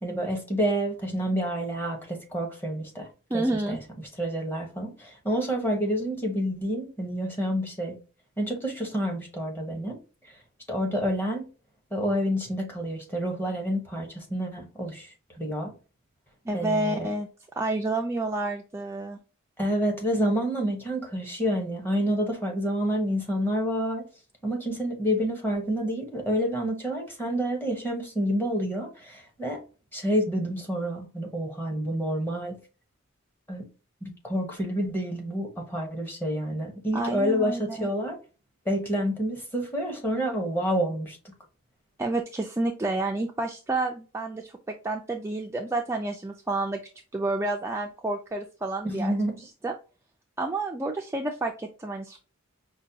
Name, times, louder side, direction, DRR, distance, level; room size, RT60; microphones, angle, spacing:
voice 1, 0.0-3.1 3.3-3.8 4.2-8.0 8.4-10.0 10.7-11.4 11.9-15.7 16.5-17.1 19.6-24.0 24.4-29.6 29.9-32.6 33.5-33.6 34.0-38.2 38.6-41.3 48.8-49.4, equal, 10° left, 1.0 m, -28 dB
voice 2, 3.3-3.8 16.5-17.3 17.6-19.2 36.9-37.9 42.0-46.8 47.1-49.2 49.6-49.7 50.4-52.2, right 2 dB, 15° right, 0.3 m, -29 dB
5.1 x 2.2 x 2.7 m
head